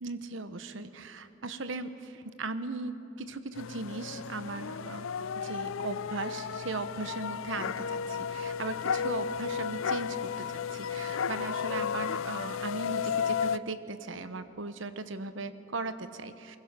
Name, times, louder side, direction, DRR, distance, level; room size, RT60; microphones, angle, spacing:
voice 1, 0.0-5.1 5.4-16.6, right 3 dB, 70° right, 11 dB, 1.0 m, -38 dB
sound 1, 3.5-13.6, left 7 dB, 85° left, 0.5 m, -33 dB
23.5 x 21.0 x 6.1 m, 2.7 s
head